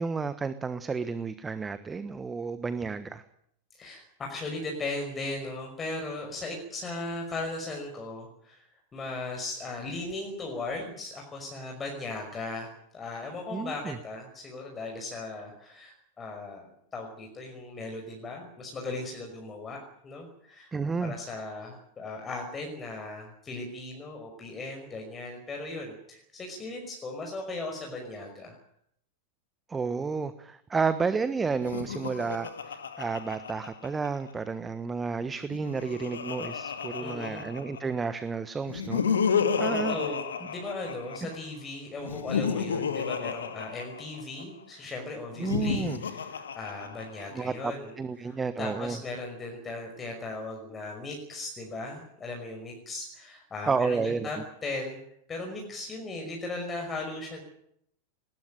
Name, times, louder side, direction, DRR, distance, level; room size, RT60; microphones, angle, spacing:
voice 1, 0.0-3.2 13.5-14.0 20.7-21.1 29.7-39.0 39.6-39.9 41.2-41.3 45.4-46.0 47.3-49.0 53.6-54.3, right 5 dB, 15° right, 13 dB, 1.3 m, -31 dB
voice 2, 3.7-28.6 37.0-37.5 39.7-48.0 48.2-55.0 55.3-57.4, left 2 dB, 20° left, 1 dB, 5.6 m, -37 dB
Laughter, 31.5-34.3 35.4-38.0 38.6-41.4 42.0-44.4 45.3-47.4, left 6 dB, 70° left, 2.1 m, -32 dB
20.5 x 20.0 x 9.2 m, 0.71 s
figure-of-eight pair, 90°, 0 cm